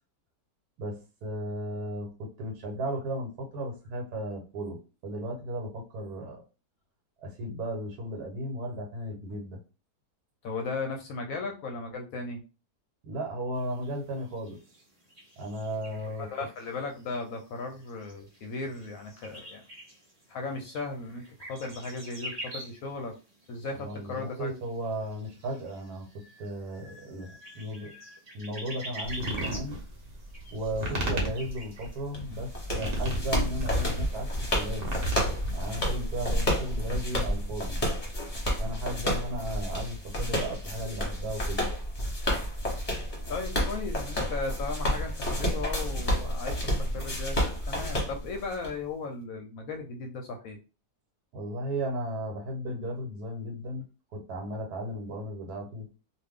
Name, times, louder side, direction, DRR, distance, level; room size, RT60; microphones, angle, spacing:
voice 1, 0.8-6.4 7.2-9.6 13.0-14.6 15.4-16.3 23.7-27.9 28.3-29.8 30.5-34.9 35.5-37.8 38.6-41.6 51.3-53.8 54.1-55.9, right 1 dB, 70° right, 2 dB, 1.3 m, -35 dB
voice 2, 10.4-12.4 16.3-19.6 20.3-23.1 23.5-24.5 43.3-46.6 46.9-47.4 47.7-50.6, left 3 dB, 70° left, 3 dB, 0.9 m, -36 dB
sound 1, 13.5-32.0, right 1 dB, 30° right, 0.7 m, -47 dB
sound 2, 29.0-35.8, right 1 dB, 50° right, 1.0 m, -34 dB
sound 3, 32.1-48.7, equal, 30° left, 0.8 m, -30 dB
2.5 x 2.4 x 3.5 m, 0.32 s
omnidirectional pair, 1.8 m